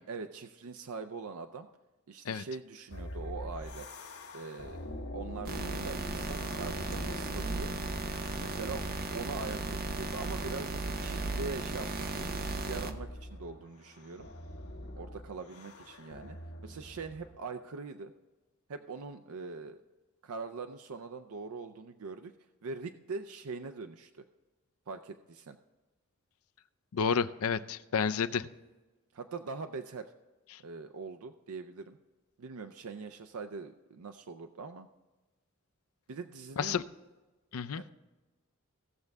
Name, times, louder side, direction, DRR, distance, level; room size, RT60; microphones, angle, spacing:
voice 1, 0.1-1.7 2.1-3.9 4.3-4.8 5.1-5.6 5.8-7.8 8.4-12.3 12.7-14.3 14.9-16.4 16.6-18.1 18.7-19.8 20.2-22.3 22.6-24.2 24.9-25.6 29.1-30.1 30.6-32.0 32.4-34.9 36.1-36.8 37.8-37.9, right 4 dB, 75° right, 8 dB, 0.5 m, -42 dB
sound 1, 2.9-17.4, left 1 dB, 90° left, 1.3 m, -45 dB
sound 2, 5.5-12.9, right 2 dB, 45° right, 0.8 m, -36 dB
voice 2, 26.9-28.5 30.5-30.6 36.6-36.8 37.5-37.8, left 6 dB, 70° left, 11 dB, 0.5 m, -30 dB
17.0 x 6.6 x 3.5 m, 1.2 s
head